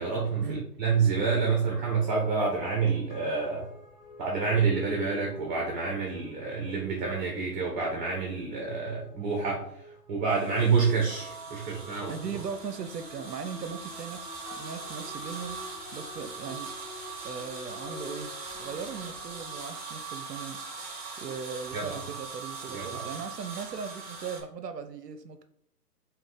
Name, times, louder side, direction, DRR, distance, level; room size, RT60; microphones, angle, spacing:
voice 1, 0.0-3.7 4.2-12.1 21.7-22.0 22.7-23.0, right 5 dB, 30° right, -1 dB, 0.9 m, -28 dB
sound 1, 1.8-19.6, left 2 dB, 45° left, 1.3 m, -49 dB
sound 2, 10.3-24.4, right 4 dB, 10° right, 1.5 m, -41 dB
voice 2, 12.1-15.6 15.9-16.7 17.2-18.3 18.6-20.6 21.2-25.4, right 6 dB, 80° right, 8 dB, 0.7 m, -38 dB
5.1 x 2.4 x 3.7 m, 0.70 s
figure-of-eight pair, 130°, 48 cm